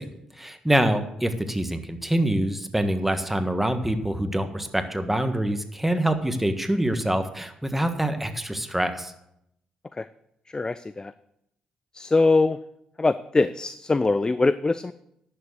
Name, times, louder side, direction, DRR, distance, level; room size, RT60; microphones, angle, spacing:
voice 1, 0.0-9.1, right 1 dB, 5° right, 8 dB, 1.5 m, -25 dB
voice 2, 10.5-11.1 11.9-12.6 13.0-14.9, left 3 dB, 25° left, 14 dB, 0.5 m, -22 dB
11.0 x 7.0 x 6.5 m, 0.78 s
hypercardioid pair, 45°, 3 cm